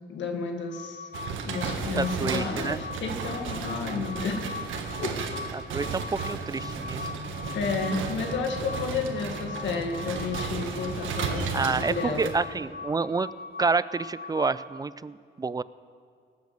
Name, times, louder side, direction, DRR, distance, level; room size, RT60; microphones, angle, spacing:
voice 1, 0.1-1.1 1.5-4.4 5.0-5.1 7.5-12.3, left 4 dB, 70° left, 4 dB, 1.9 m, -31 dB
sound 1, 0.6-14.7, left 4 dB, 50° left, 1.4 m, -41 dB
sound 2, 1.1-12.3, right 5 dB, 80° right, 1.5 m, -34 dB
voice 2, 1.9-2.8 5.5-7.1 11.5-13.3 13.6-15.6, right 4 dB, 20° right, 18 dB, 0.4 m, -28 dB
sound 3, 6.3-12.0 12.3-12.4, left 1 dB, 35° right, 3.3 m, -43 dB
18.0 x 8.2 x 6.8 m, 2.3 s
cardioid pair, 90°, 20 cm